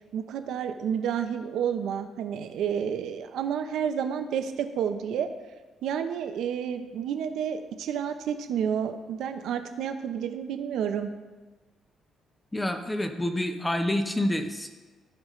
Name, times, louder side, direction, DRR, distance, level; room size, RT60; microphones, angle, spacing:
voice 1, 0.1-5.3 5.8-11.1, right 8 dB, 75° right, 8 dB, 0.6 m, -30 dB
voice 2, 12.5-14.7, left 1 dB, 10° left, 7 dB, 0.7 m, -28 dB
14.5 x 5.3 x 3.1 m, 1.2 s
cardioid pair, 135°, 0 cm